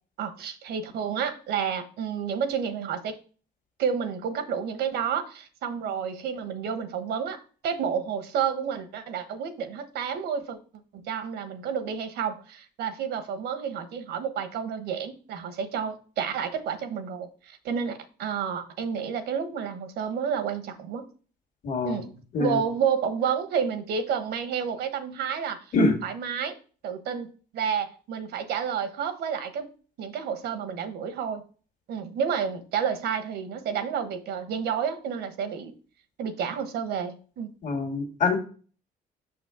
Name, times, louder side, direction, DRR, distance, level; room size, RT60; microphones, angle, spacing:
voice 1, 0.2-3.2 3.8-10.6 10.9-21.0 21.8-22.1 22.4-25.6 26.0-26.6 26.8-29.7 30.0-31.4 31.9-35.7 36.2-37.5, right 7 dB, 75° right, 9 dB, 1.2 m, -30 dB
voice 2, 21.6-22.1 22.3-22.6 25.7-26.0 37.6-38.4, left 3 dB, 50° left, 1 dB, 1.7 m, -24 dB
6.5 x 5.9 x 3.6 m, 0.39 s
cardioid pair, 110°, 17 cm